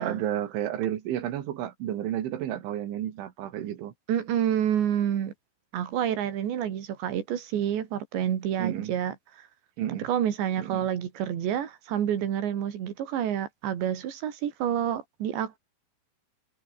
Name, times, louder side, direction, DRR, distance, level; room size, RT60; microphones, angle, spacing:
voice 1, 0.0-3.9 8.6-8.9 9.8-10.1 10.6-10.9, right 11 dB, 90° right, 4.6 m, -31 dB
voice 2, 4.1-5.3 5.7-9.1 10.0-15.6, right 10 dB, 75° right, 4.9 m, -28 dB
omnidirectional pair, 5.3 m